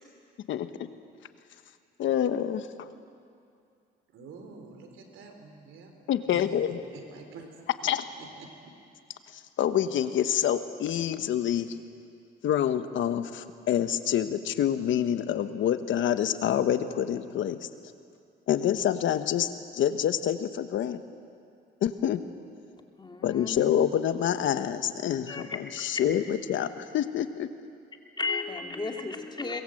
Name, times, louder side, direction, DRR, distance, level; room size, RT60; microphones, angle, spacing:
voice 1, 0.5-0.9 2.0-2.9 6.1-6.8 7.8-8.1 9.6-11.8 12.4-17.7 18.5-21.0 21.8-22.2 23.2-25.5 25.8-27.5, left 10 dB, 75° left, 10 dB, 1.2 m, -27 dB
voice 2, 4.1-5.9 6.3-6.6 6.9-7.5 8.1-8.7, right 4 dB, 80° right, 4 dB, 3.7 m, -47 dB
voice 3, 23.0-23.6 25.3-26.2 28.2-29.6, left 3 dB, 20° left, 2 dB, 2.7 m, -34 dB
23.0 x 21.5 x 7.8 m, 2.4 s
cardioid pair, 90°, 20 cm